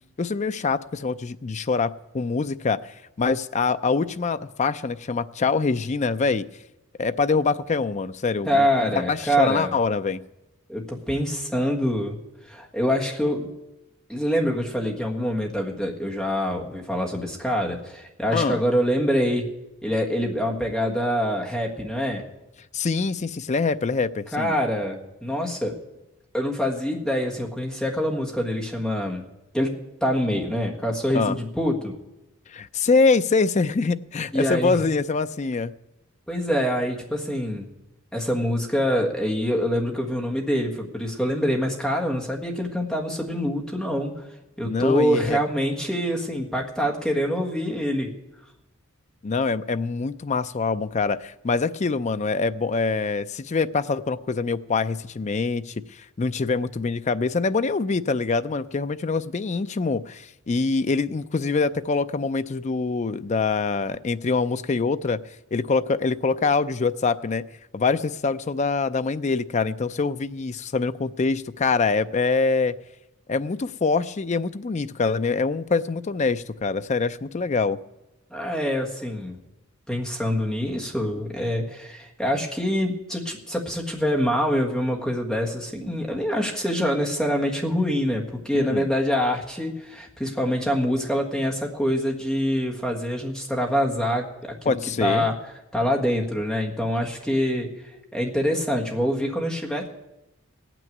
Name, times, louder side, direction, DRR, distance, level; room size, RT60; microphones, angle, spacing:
voice 1, 0.2-2.8 3.2-6.5 7.0-8.7 8.9-10.2 18.3-18.6 22.7-24.5 31.1-31.4 32.5-35.7 44.6-45.4 49.2-65.2 65.5-67.4 67.7-72.7 73.3-77.8 88.6-88.9 94.7-95.3, left 4 dB, 35° left, 12 dB, 0.4 m, -24 dB
voice 2, 8.5-9.7 10.7-12.2 12.5-13.5 14.1-19.5 19.8-22.2 24.3-25.8 26.3-29.2 29.5-29.7 30.0-32.0 34.3-34.8 36.3-37.7 38.1-44.3 44.6-48.1 78.3-79.4 79.9-95.3 95.7-97.7 98.1-99.9, equal, 5° left, 0 dB, 1.5 m, -25 dB
16.5 x 6.1 x 9.2 m, 0.94 s
head